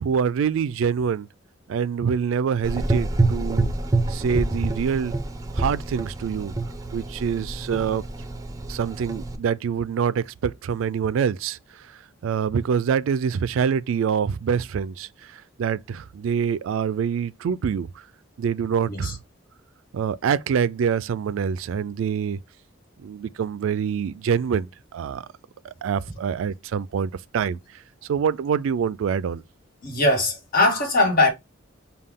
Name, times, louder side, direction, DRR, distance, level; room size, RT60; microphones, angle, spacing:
voice 1, 0.0-1.3 1.7-3.7 4.1-5.1 5.6-6.5 6.9-8.0 8.7-11.6 12.2-17.9 18.4-19.2 19.9-22.4 23.0-25.2 25.6-27.6 28.1-29.4, right 7 dB, 70° right, 0.3 m, -25 dB
Gurgling / Engine, 2.6-9.4, right 2 dB, 20° right, 0.5 m, -27 dB
voice 2, 29.8-31.3, left 2 dB, 50° left, 1.4 m, -20 dB
5.4 x 2.3 x 3.6 m
head